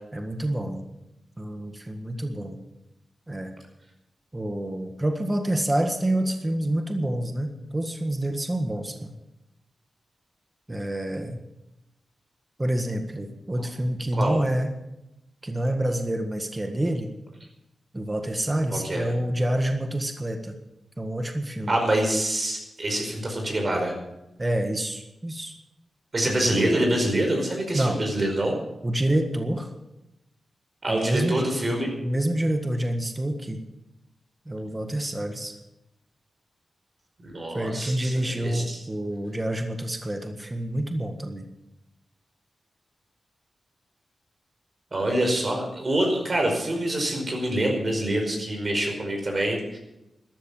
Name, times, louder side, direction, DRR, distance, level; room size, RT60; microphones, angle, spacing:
voice 1, 0.1-0.8 1.4-2.6 3.3-3.5 4.3-9.1 10.7-11.4 12.6-14.7 15.4-17.1 17.9-20.5 21.0-21.7 24.4-25.5 26.2-26.6 27.7-28.0 28.8-29.7 30.9-33.6 34.4-35.5 37.5-41.5, right 1 dB, 20° right, 6 dB, 1.6 m, -27 dB
voice 2, 18.7-19.1 21.7-23.9 26.1-28.6 30.8-31.9 37.2-38.8 44.9-49.8, right 1 dB, 40° right, 2 dB, 5.0 m, -26 dB
13.5 x 13.0 x 7.2 m, 0.89 s
wide cardioid pair, 110°, 0 cm